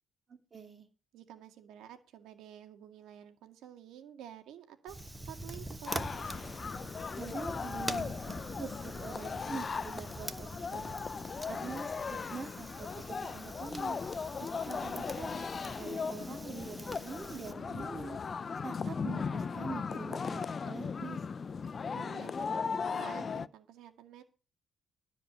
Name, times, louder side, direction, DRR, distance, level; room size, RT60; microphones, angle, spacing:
voice 1, 0.3-0.9 7.2-11.0 11.5-14.0 14.4-18.2 18.6-21.2, right 5 dB, 40° right, 5 dB, 2.6 m, -45 dB
voice 2, 1.1-5.0 5.2-6.4 21.9-24.2, right 10 dB, 85° right, 7 dB, 2.0 m, -50 dB
Fire, 4.9-17.5, right 1 dB, 10° right, 1.1 m, -45 dB
sound 1, 5.9-23.5, left 5 dB, 40° left, 0.5 m, -38 dB
12.5 x 5.1 x 8.6 m, 0.35 s
cardioid pair, 90°, 0 cm